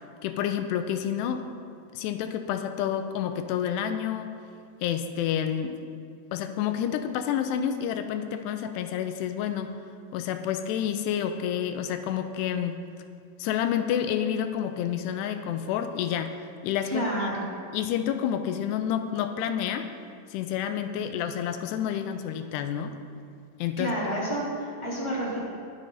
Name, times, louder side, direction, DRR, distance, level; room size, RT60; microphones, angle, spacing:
voice 1, 0.2-1.5 1.9-4.3 4.8-5.8 6.3-9.7 10.1-12.8 13.4-16.3 16.6-17.4 17.7-19.9 20.3-23.0 23.6-23.9, left 9 dB, 90° left, 8 dB, 2.7 m, -29 dB
voice 2, 16.8-17.4 23.8-25.4, right 1 dB, 10° left, -8 dB, 2.7 m, -29 dB
20.5 x 7.0 x 4.0 m, 2.3 s
omnidirectional pair, 4.8 m